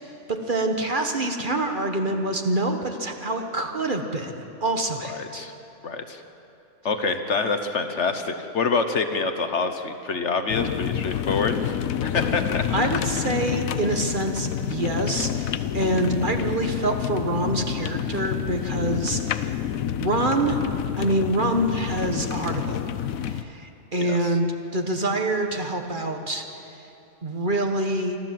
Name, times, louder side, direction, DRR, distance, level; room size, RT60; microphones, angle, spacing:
voice 1, 0.3-5.4 12.7-19.6 20.0-20.6 21.0-22.8 23.3-26.8 27.2-28.2, right 1 dB, 35° right, 4 dB, 1.5 m, -26 dB
voice 2, 5.2-5.5 5.8-6.2 6.8-12.6 24.0-24.3, left 4 dB, 55° left, 7 dB, 1.3 m, -26 dB
sound 1, 10.5-23.4, left 10 dB, 80° left, 1.1 m, -28 dB
26.5 x 13.0 x 7.6 m, 3.0 s
omnidirectional pair, 1.4 m